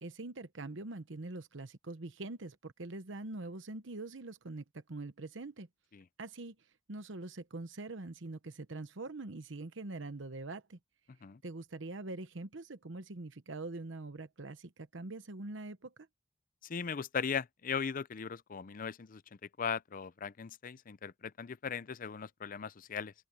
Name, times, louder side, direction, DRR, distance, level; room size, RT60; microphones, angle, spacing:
voice 1, 0.0-5.7 6.2-6.6 6.9-10.8 11.4-16.1, right 2 dB, 75° right, 1.0 m, -43 dB
voice 2, 16.7-19.2 19.6-23.1, left 6 dB, 45° left, 0.5 m, -38 dB
open air
head